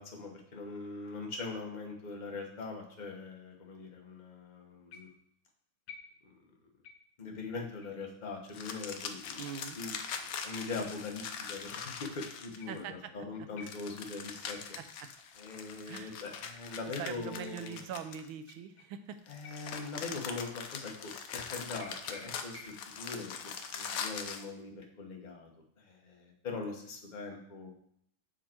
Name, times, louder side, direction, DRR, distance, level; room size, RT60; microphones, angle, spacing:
voice 1, 0.0-5.1 6.2-6.4 7.2-9.4 9.7-9.9 10.2-14.6 15.4-17.8 19.3-25.5 25.8-27.7, left 4 dB, 35° left, 1 dB, 0.8 m, -42 dB
sound 1, 4.9-5.4 5.9-6.5 6.8-7.2 7.8-8.0 8.8-8.9 9.8-9.9 10.7-10.8 12.6-13.0 13.6-14.2 14.5-14.9 15.5-15.7 16.5-16.6 17.4-17.5 18.4-19.1 19.4-21.0 21.4-21.8 22.3-22.7, left 5 dB, 70° left, 1.2 m, -56 dB
sound 2, 8.5-12.8 13.6-18.5 19.3-24.5, left 6 dB, 85° left, 0.8 m, -42 dB
voice 2, 9.4-9.8 12.7-13.1 13.4-13.7 14.8-15.1 15.9-16.2 17.0-19.3, right 8 dB, 75° right, 10 dB, 1.3 m, -43 dB
sound 3, 21.8-23.0, equal, 50° right, 3.2 m, -51 dB
6.9 x 5.2 x 4.4 m, 0.67 s
omnidirectional pair, 2.3 m